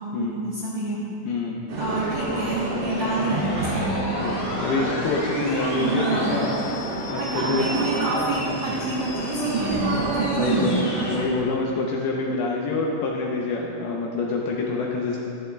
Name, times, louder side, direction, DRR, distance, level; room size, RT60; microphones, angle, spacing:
voice 1, 0.0-1.0 1.8-4.2 5.8-6.5 7.2-10.9, right 2 dB, 75° right, -7 dB, 1.6 m, -27 dB
voice 2, 1.3-1.7 4.2-6.5 7.1-7.7 10.3-10.7 11.1-15.2, left 3 dB, 80° left, -2 dB, 2.3 m, -26 dB
sound 1, 1.7-11.3, right 2 dB, 55° right, 3.0 m, -28 dB
sound 2, 3.0-11.2, left 1 dB, 60° left, 1.7 m, -37 dB
12.5 x 12.0 x 2.3 m, 2.8 s
omnidirectional pair, 5.1 m